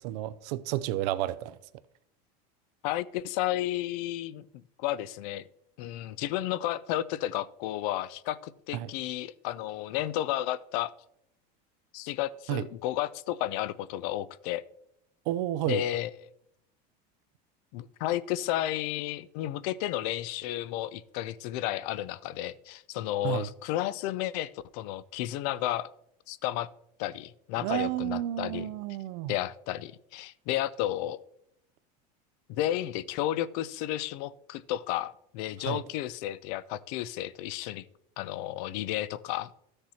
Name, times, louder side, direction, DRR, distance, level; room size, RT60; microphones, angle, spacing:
voice 1, 0.0-1.6 8.7-8.9 12.5-12.7 15.3-15.8 23.2-23.5 27.6-29.3 35.6-35.8, right 14 dB, 75° right, 0.6 m, -31 dB
voice 2, 2.8-5.5 5.8-10.9 11.9-14.6 15.7-16.1 17.7-25.9 26.3-26.7 27.0-28.7 29.3-31.2 32.5-37.9 38.2-39.5, left 13 dB, 70° left, 0.6 m, -32 dB
13.0 x 6.7 x 4.3 m
supercardioid pair, 140°, 21 cm